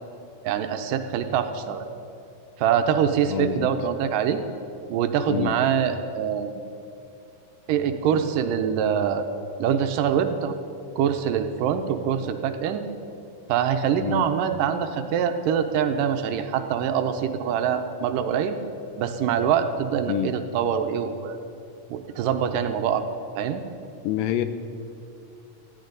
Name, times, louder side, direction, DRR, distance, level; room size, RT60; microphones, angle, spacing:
voice 1, 0.4-1.8 2.6-4.4 4.9-6.6 7.7-9.2 9.6-10.5 11.0-12.9 13.5-18.6 19.0-21.4 21.9-23.0 23.4-23.6, right 8 dB, 85° right, 7 dB, 2.4 m, -24 dB
voice 2, 3.3-3.7 5.3-5.6 8.1-8.2 14.0-14.3 20.1-20.3 24.0-24.5, left 12 dB, 90° left, 10 dB, 2.5 m, -27 dB
19.5 x 14.5 x 4.0 m, 2.7 s
omnidirectional pair, 3.8 m